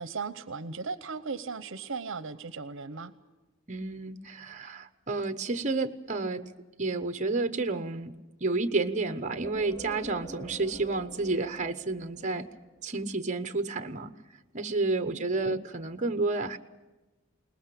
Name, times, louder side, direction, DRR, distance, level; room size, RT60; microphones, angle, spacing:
voice 1, 0.0-3.1 15.2-15.6, right 4 dB, 65° right, 13 dB, 0.9 m, -37 dB
voice 2, 3.7-6.5 6.8-12.5 12.8-14.1 14.5-16.6, right 3 dB, 35° right, 9 dB, 1.0 m, -30 dB
sound 1, 9.4-13.0, right 2 dB, 20° left, 6.0 m, -46 dB
22.0 x 20.0 x 8.5 m, 1.1 s
head